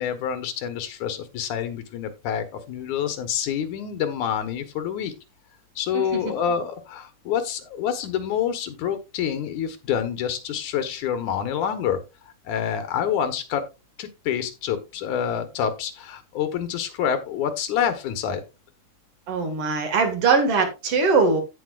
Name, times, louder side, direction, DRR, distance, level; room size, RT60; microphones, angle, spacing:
voice 1, 0.0-5.1 5.8-12.0 12.4-13.6 14.0-18.4, left 8 dB, 85° left, 2.6 m, -27 dB
voice 2, 19.3-21.4, right 4 dB, 55° right, 2.7 m, -21 dB
16.0 x 5.4 x 2.4 m
omnidirectional pair, 3.3 m